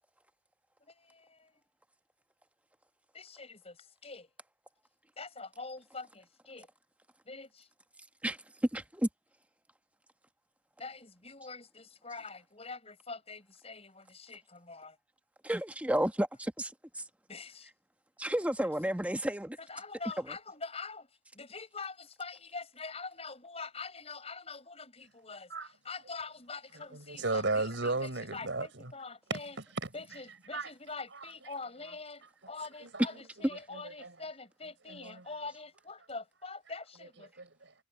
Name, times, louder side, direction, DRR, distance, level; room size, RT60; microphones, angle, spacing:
voice 1, 1.0-1.5 3.1-3.7 4.0-4.3 5.2-6.7 7.3-7.7 10.8-15.0 17.3-17.7 18.6-18.7 19.6-21.1 21.3-25.5 25.9-27.9 28.3-29.5 29.9-37.3, left 4 dB, 35° left, 7.0 m, -44 dB
voice 2, 8.7-9.1 15.4-16.7 17.0-17.1 18.2-19.6, right 1 dB, 10° right, 1.1 m, -31 dB
voice 3, 26.7-28.9 29.3-30.7 31.1-31.3 31.8-32.0 32.4-32.5 32.8-34.2 34.6-35.3 37.0-37.7, right 3 dB, 85° right, 4.6 m, -37 dB
head